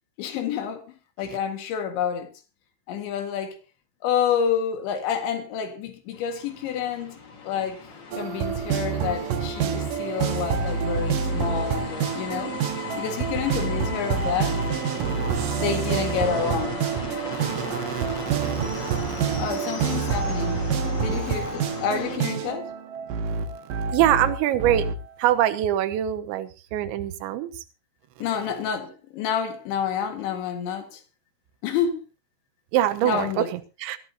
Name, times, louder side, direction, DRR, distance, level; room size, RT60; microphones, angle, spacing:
voice 1, 0.2-2.3 2.9-3.6 4.0-7.2 7.4-7.8 8.2-12.6 13.0-14.6 15.6-16.8 19.4-20.6 21.0-22.7 28.2-31.0 31.6-32.0 33.0-33.5, left 8 dB, 80° left, 4.1 m, -28 dB
sound 1, 6.1-22.2, left 4 dB, 60° left, 1.2 m, -37 dB
sound 2, 8.1-24.9, right 6 dB, 65° right, 2.4 m, -27 dB
voice 2, 14.2-20.4 20.8-21.6 23.9-24.9 25.2-27.6 32.7-34.0, right 12 dB, 85° right, 3.3 m, -27 dB
23.0 x 13.5 x 2.8 m
omnidirectional pair, 5.2 m